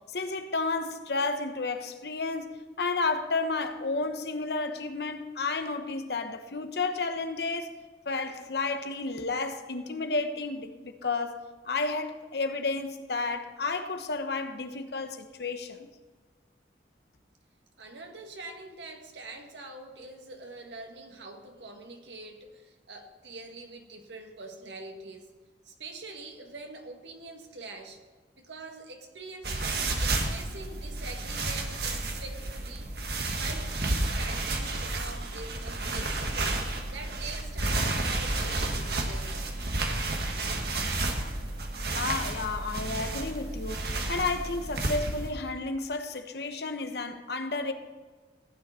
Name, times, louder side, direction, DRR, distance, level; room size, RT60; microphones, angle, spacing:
voice 1, 0.1-7.7 8.1-15.9 42.0-47.7, left 3 dB, 65° left, 1.0 m, -32 dB
voice 2, 17.8-25.3 25.6-28.0 28.4-36.6 36.9-39.5, right 3 dB, 85° right, 1.7 m, -44 dB
sound 1, 29.4-45.3, right 2 dB, 60° right, 1.5 m, -31 dB
15.0 x 9.3 x 4.3 m
head